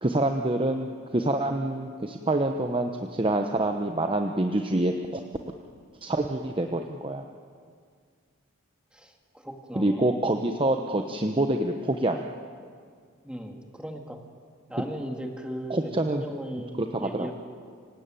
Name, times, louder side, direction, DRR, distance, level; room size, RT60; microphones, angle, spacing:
voice 1, 0.0-5.2 6.0-7.2 9.7-12.2 15.7-16.2 16.8-17.3, right 1 dB, 25° right, 5 dB, 0.9 m, -26 dB
voice 2, 9.4-10.2 13.2-14.2 14.7-15.8 16.1-17.3, equal, 5° right, 3 dB, 2.1 m, -37 dB
25.5 x 17.0 x 9.1 m, 2.1 s
head